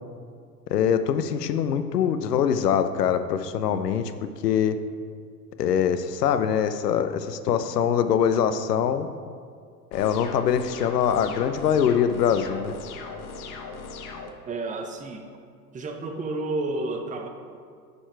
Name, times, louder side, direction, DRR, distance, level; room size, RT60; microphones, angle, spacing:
voice 1, 0.7-4.1 4.4-4.8 5.6-9.1 9.9-12.7, left 8 dB, 75° left, 10 dB, 0.9 m, -23 dB
sound 1, 9.9-14.3, left 4 dB, 40° left, 1.3 m, -38 dB
voice 2, 14.5-15.3 15.7-17.3, right 2 dB, 15° right, 4 dB, 1.0 m, -30 dB
11.5 x 7.1 x 4.6 m, 2.2 s
hypercardioid pair, 105°, 48 cm